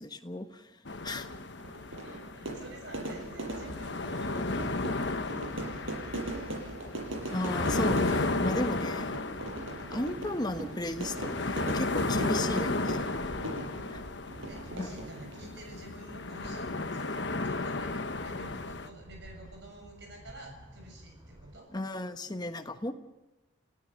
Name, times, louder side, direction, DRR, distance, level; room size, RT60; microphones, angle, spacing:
voice 1, 0.0-1.3 7.3-9.2 9.9-13.0 13.9-14.0 14.8-14.9 21.7-22.9, left 1 dB, 20° left, 8 dB, 1.2 m, -35 dB
sound 1, 0.8-18.9, left 2 dB, 60° left, 1.3 m, -34 dB
voice 2, 0.9-1.4 1.8-6.0 14.5-21.7, right 1 dB, 55° right, 2 dB, 7.0 m, -50 dB
Fire / Fireworks, 1.6-15.6, right 1 dB, 75° right, 6.4 m, -40 dB
sound 2, 3.5-21.6, equal, 20° right, 3.0 m, -52 dB
29.0 x 16.5 x 6.5 m, 1.1 s
head